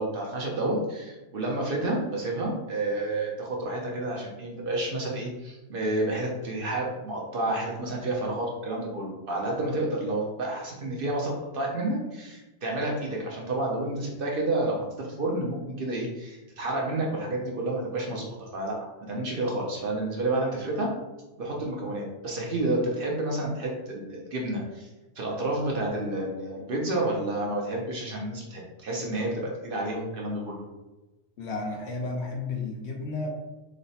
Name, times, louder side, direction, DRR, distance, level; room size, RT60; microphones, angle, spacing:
voice 1, 0.0-20.9 21.4-24.9 25.2-30.6, right 2 dB, 55° right, -1 dB, 0.7 m, -30 dB
voice 2, 31.4-33.3, left 3 dB, 70° left, 0 dB, 0.9 m, -32 dB
3.2 x 2.1 x 4.0 m, 1.1 s
omnidirectional pair, 1.2 m